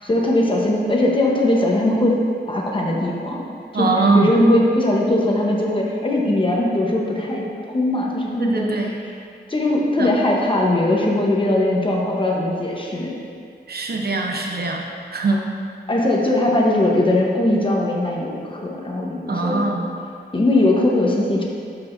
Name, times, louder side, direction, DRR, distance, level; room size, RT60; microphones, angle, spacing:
voice 1, 0.0-2.2 2.5-3.4 3.7-9.1 9.5-13.1 15.9-19.6 20.3-21.4, left 1 dB, 30° left, -2 dB, 1.0 m, -20 dB
voice 2, 3.7-4.3 8.4-8.9 10.0-10.1 13.7-14.8 15.1-15.5 19.3-19.9, right 3 dB, 60° right, 1 dB, 0.8 m, -21 dB
11.5 x 4.8 x 2.6 m, 2.3 s
wide cardioid pair, 135°, 18 cm